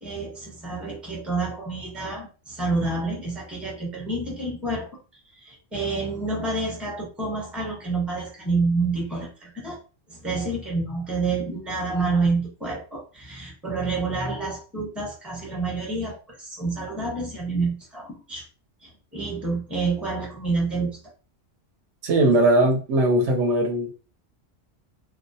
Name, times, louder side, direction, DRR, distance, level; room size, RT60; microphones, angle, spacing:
voice 1, 0.0-4.9 5.3-9.8 10.1-18.4 18.8-21.0, right 3 dB, ahead, 0.7 m, -28 dB
voice 2, 22.0-23.9, right 1 dB, 70° right, 0.9 m, -19 dB
2.2 x 2.1 x 2.6 m
omnidirectional pair, 1.3 m